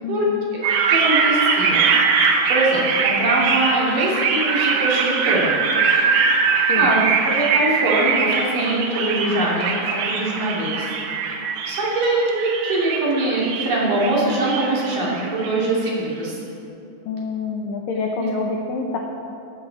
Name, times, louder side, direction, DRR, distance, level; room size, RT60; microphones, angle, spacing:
voice 1, 0.0-0.6 6.7-6.9 17.1-19.0, left 4 dB, 80° left, 0 dB, 2.0 m, -27 dB
sound 1, 0.6-15.7, right 5 dB, 70° right, 3.0 m, -22 dB
voice 2, 0.9-1.8 2.5-5.6 6.8-10.9 11.7-16.4 18.2-18.3, right 2 dB, 50° right, -5 dB, 4.4 m, -22 dB
16.5 x 15.0 x 4.3 m, 2.6 s
omnidirectional pair, 5.5 m